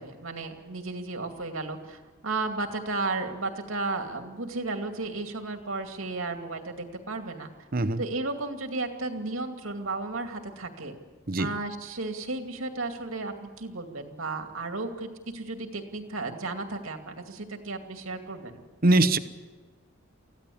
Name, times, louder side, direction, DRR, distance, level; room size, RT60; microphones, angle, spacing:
voice 1, 0.0-7.5 8.0-11.0 11.4-18.6, right 3 dB, 85° right, 5 dB, 2.5 m, -34 dB
voice 2, 7.7-8.0 11.3-11.5 18.8-19.2, right 2 dB, 45° right, 12 dB, 1.0 m, -22 dB
24.0 x 15.5 x 8.6 m, 1.3 s
head